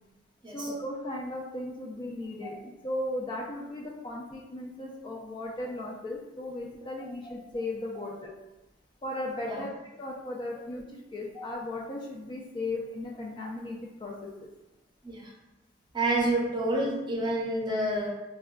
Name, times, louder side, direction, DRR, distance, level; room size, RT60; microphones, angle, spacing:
voice 1, 0.5-8.3 9.0-14.3, left 1 dB, 25° left, -2 dB, 0.3 m, -36 dB
voice 2, 15.9-18.1, right 1 dB, 25° right, -3 dB, 0.6 m, -28 dB
3.5 x 2.2 x 2.3 m, 1.0 s
head